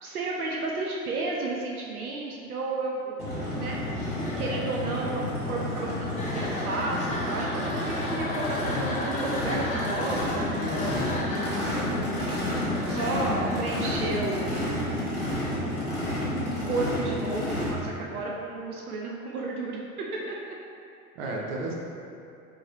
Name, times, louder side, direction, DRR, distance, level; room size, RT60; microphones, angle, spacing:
voice 1, 0.0-3.2 3.6-3.8 4.4-10.5 11.3-12.5 12.9-14.6 16.1-20.5, right 2 dB, 80° right, -2 dB, 0.5 m, -32 dB
Race car auto racing / Idling / Accelerating revving vroom, 3.2-17.7, left 1 dB, 90° left, 1.3 m, -30 dB
sound 1, 3.9-15.6, left 1 dB, 20° left, 0.5 m, -36 dB
voice 2, 10.6-11.1 15.7-15.8 21.2-21.7, right 1 dB, 45° right, -2 dB, 0.8 m, -33 dB
4.5 x 3.0 x 2.9 m, 2.7 s
figure-of-eight pair, 85°, 43 cm